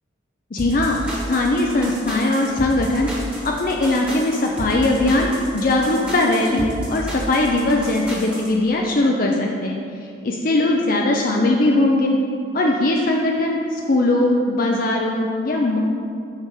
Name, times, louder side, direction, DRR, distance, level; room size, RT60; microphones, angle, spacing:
voice 1, 0.5-1.0 1.3-3.1 3.4-5.3 5.5-9.8 10.2-12.1 12.5-15.8, left 2 dB, 45° left, 0 dB, 0.5 m, -20 dB
sound 1, 0.6-8.5, equal, 5° right, 1.3 m, -31 dB
6.5 x 5.1 x 6.5 m, 2.4 s
head